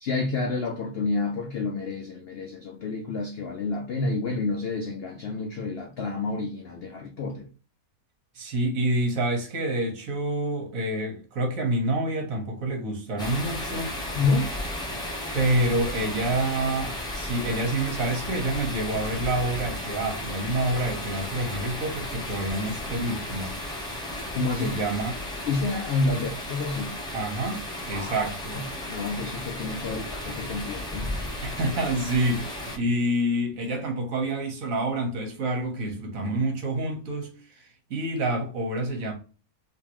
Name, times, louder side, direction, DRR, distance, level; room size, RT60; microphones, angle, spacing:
voice 1, 0.0-7.5 14.1-14.5 24.3-24.8 25.5-26.9 27.9-28.3 28.6-28.7 28.9-31.1, left 3 dB, 85° left, 0.5 m, -29 dB
voice 2, 8.3-13.9 15.3-23.6 24.6-25.1 26.1-26.2 27.1-28.6 31.4-39.1, right 1 dB, 60° right, 1.4 m, -28 dB
sound 1, 13.2-32.8, left 1 dB, 5° left, 0.5 m, -34 dB
3.6 x 2.8 x 2.9 m
omnidirectional pair, 1.7 m